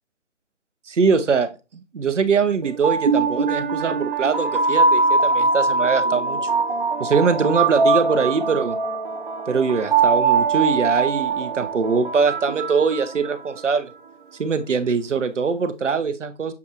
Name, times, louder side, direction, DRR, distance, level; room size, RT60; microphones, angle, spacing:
voice 1, 0.9-1.5 1.9-6.4 7.0-8.8 9.5-13.9 14.4-16.5, right 5 dB, 85° right, 10 dB, 0.8 m, -22 dB
sound 1, 2.6-13.7, right 4 dB, 45° right, 0.6 m, -22 dB
6.9 x 2.5 x 2.9 m, 0.27 s
figure-of-eight pair, 155°, 36 cm